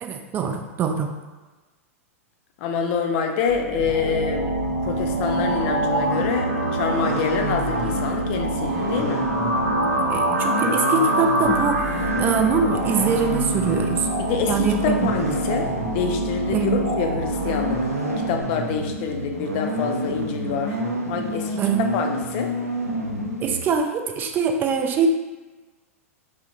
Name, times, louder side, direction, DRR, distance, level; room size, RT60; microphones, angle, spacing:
voice 1, 0.0-1.1 9.8-14.1 14.5-15.1 16.5-16.8 21.6-21.8 23.4-25.1, right 5 dB, 25° right, 4 dB, 0.4 m, -23 dB
voice 2, 2.6-4.5 4.9-9.3 14.2-17.8 18.3-20.8 21.1-22.5, left 6 dB, 45° left, 4 dB, 0.4 m, -26 dB
sound 1, 3.5-18.4, right 1 dB, 50° right, 0.8 m, -26 dB
sound 2, 3.7-23.6, right 1 dB, 85° right, 0.5 m, -30 dB
sound 3, 4.9-10.9 11.5-14.7, equal, 5° right, 1.1 m, -41 dB
4.4 x 2.1 x 2.8 m, 1.2 s
figure-of-eight pair, 100°, 8 cm